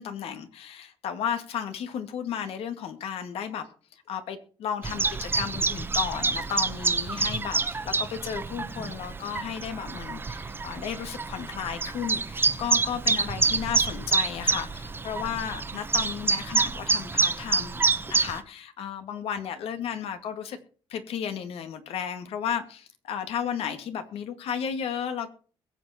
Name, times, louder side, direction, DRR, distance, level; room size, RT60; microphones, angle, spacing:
voice 1, 0.0-3.7 3.9-20.6 20.9-25.3, left 8 dB, 80° left, 8 dB, 2.1 m, -34 dB
Chirp tweet, 4.8-18.4, right 4 dB, 20° right, 1.0 m, -27 dB
22.0 x 7.7 x 4.4 m, 0.41 s
cardioid pair, 125°, 10 cm